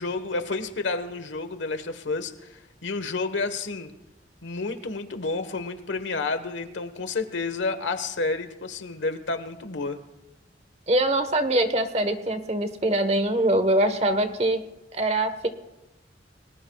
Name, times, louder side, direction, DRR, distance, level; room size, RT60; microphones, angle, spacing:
voice 1, 0.0-3.9 4.4-10.0, left 3 dB, 85° left, 10 dB, 1.3 m, -30 dB
voice 2, 10.9-14.6 14.9-15.5, right 1 dB, 35° right, 9 dB, 1.2 m, -23 dB
30.0 x 20.0 x 2.4 m, 0.99 s
head